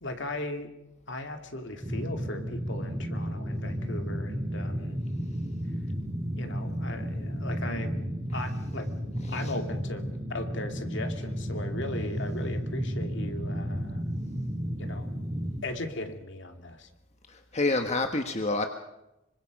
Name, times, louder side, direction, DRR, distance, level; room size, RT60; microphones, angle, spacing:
voice 1, 0.0-0.7 1.1-5.0 6.4-8.9 9.3-14.0 14.8-15.1 15.6-16.9, left 2 dB, 60° left, 5 dB, 2.7 m, -37 dB
sound 1, 1.8-15.6, equal, 10° right, 2.8 m, -33 dB
voice 2, 17.3-18.7, left 2 dB, 35° left, 6 dB, 1.3 m, -28 dB
26.0 x 25.0 x 5.3 m, 0.89 s
head